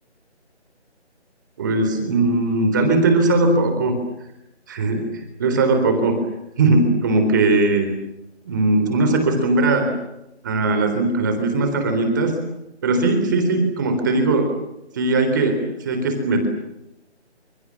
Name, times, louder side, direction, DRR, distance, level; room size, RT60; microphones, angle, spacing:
voice 1, 1.6-4.0 4.7-5.1 5.4-6.2 6.6-7.9 8.5-9.9 10.4-12.3 12.8-14.5 14.9-16.5, right 2 dB, 15° right, 6 dB, 3.8 m, -19 dB
29.0 x 27.5 x 7.3 m, 0.87 s
figure-of-eight pair, 170°, 34 cm